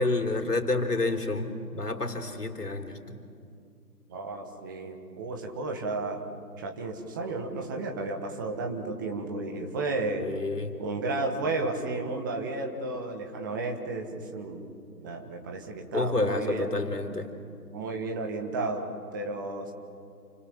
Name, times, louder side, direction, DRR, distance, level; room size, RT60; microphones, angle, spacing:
voice 1, 0.0-3.2 10.2-10.8 15.9-17.3, left 2 dB, 70° left, 4 dB, 3.8 m, -29 dB
voice 2, 4.1-6.2 6.6-10.3 10.8-14.7 15.0-16.7 17.7-19.7, right 3 dB, 10° right, 3 dB, 1.4 m, -33 dB
29.0 x 26.5 x 7.2 m, 2.4 s
figure-of-eight pair, 150°, 48 cm